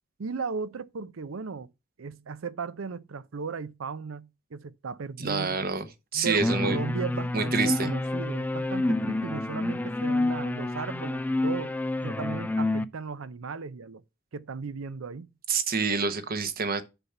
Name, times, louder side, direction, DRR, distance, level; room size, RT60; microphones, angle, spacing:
voice 1, 0.2-1.7 2.0-5.7 6.1-11.7 12.0-14.0 14.3-15.3, right 5 dB, 85° right, 0.6 m, -36 dB
voice 2, 5.2-5.9 6.1-6.8 7.3-7.9 15.5-16.8, right 4 dB, 50° right, 1.0 m, -27 dB
sound 1, 6.4-12.8, left 2 dB, 10° left, 0.3 m, -28 dB
6.8 x 5.7 x 5.9 m
head